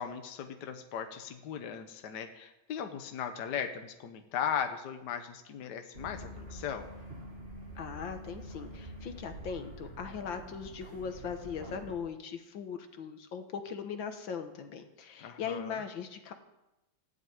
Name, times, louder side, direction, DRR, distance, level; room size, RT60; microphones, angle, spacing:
voice 1, 0.0-6.9 15.2-15.8, left 8 dB, 65° left, 6 dB, 1.5 m, -37 dB
sound 1, 5.9-11.9, equal, 30° right, 2.3 m, -46 dB
voice 2, 7.8-16.3, left 6 dB, 80° left, 7 dB, 2.0 m, -39 dB
14.5 x 8.2 x 9.3 m, 0.97 s
omnidirectional pair, 2.1 m